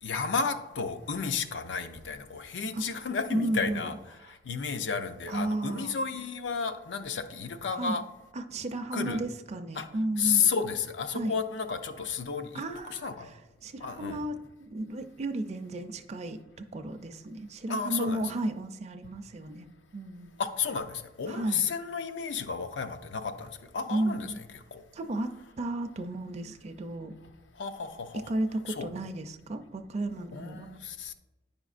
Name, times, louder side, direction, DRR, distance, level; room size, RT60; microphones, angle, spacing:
voice 1, 0.0-3.9 4.3-8.0 8.9-9.2 9.8-9.9 10.2-13.3 13.8-14.2 17.7-18.2 20.4-24.4 24.7-24.8 27.6-28.3 28.7-28.9 30.3-31.1, left 6 dB, 80° left, 0.5 m, -32 dB
voice 2, 3.3-3.9 5.3-6.0 7.7-8.0 8.3-10.5 11.1-11.3 12.5-16.4 16.7-19.7 19.9-20.4 21.3-21.7 23.9-24.4 24.9-27.2 28.3-30.7, right 1 dB, 35° right, 0.4 m, -34 dB
9.7 x 5.1 x 2.4 m
head